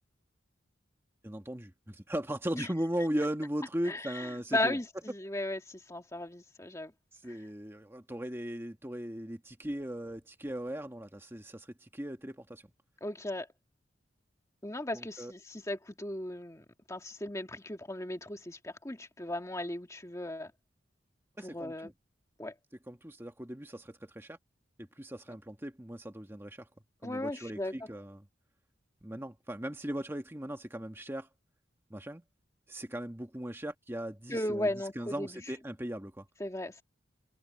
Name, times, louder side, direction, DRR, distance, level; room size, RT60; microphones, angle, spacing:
voice 1, 1.2-4.8 7.2-12.6 14.9-15.3 21.4-21.9 22.9-24.4 24.8-26.7 27.0-28.3 29.0-31.3 31.9-32.2 32.7-36.2, equal, 15° right, 1.4 m, -38 dB
voice 2, 3.9-4.3 4.5-6.9 13.0-13.5 14.6-20.5 21.4-21.9 22.4-22.5 27.0-27.7 34.3-35.4 36.4-36.8, left 1 dB, 15° left, 1.7 m, -36 dB
head